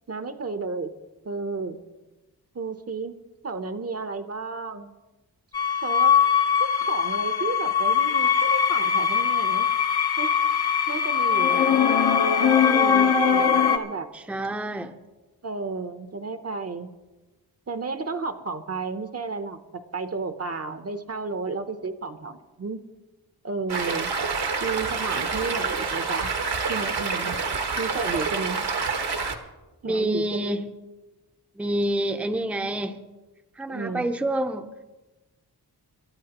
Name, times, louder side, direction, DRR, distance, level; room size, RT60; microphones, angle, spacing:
voice 1, 0.1-0.9 1.2-1.8 2.5-3.1 3.4-4.9 5.8-6.1 6.6-9.7 10.2-10.3 10.9-11.9 12.6-14.1 15.4-16.9 17.7-22.8 23.4-24.1 24.6-26.3 26.7-27.4 27.8-28.6 29.8-30.5 33.7-34.1, right 4 dB, 40° right, 8 dB, 0.7 m, -32 dB
sound 1, 5.5-13.8, left 7 dB, 75° left, 1.1 m, -21 dB
voice 2, 14.1-15.0 29.8-30.7 31.6-33.0 33.6-34.7, right 1 dB, 5° right, 6 dB, 0.6 m, -27 dB
Stream, 23.7-29.4, right 4 dB, 75° right, 1.4 m, -27 dB
28.0 x 13.0 x 2.9 m, 1.2 s
wide cardioid pair, 150°, 39 cm